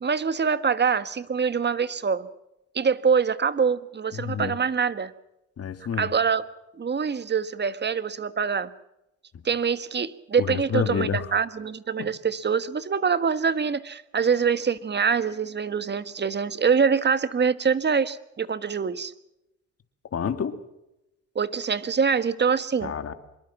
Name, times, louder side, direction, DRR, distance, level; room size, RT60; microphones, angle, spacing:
voice 1, 0.0-2.3 2.7-5.1 6.0-6.4 6.8-8.7 9.4-19.1 21.3-22.9, right 6 dB, 35° right, 1.5 m, -24 dB
voice 2, 4.1-4.5 5.6-6.1 10.4-11.3 12.0-12.1 20.1-20.6 22.8-23.1, left 7 dB, 50° left, 2.6 m, -28 dB
25.5 x 22.5 x 6.0 m
cardioid pair, 90°, 30 cm